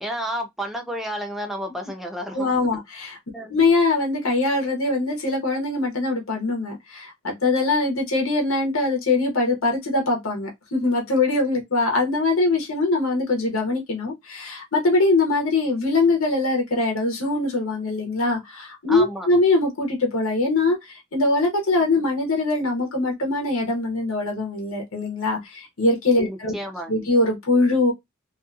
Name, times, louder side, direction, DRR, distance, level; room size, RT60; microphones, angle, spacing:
voice 1, 0.0-2.5 3.3-3.6 18.9-19.3 26.3-27.1, equal, ahead, 0.5 m, -31 dB
voice 2, 2.3-3.2 3.5-26.5 26.9-27.9, left 2 dB, 85° left, 0.9 m, -22 dB
2.5 x 2.3 x 2.5 m
head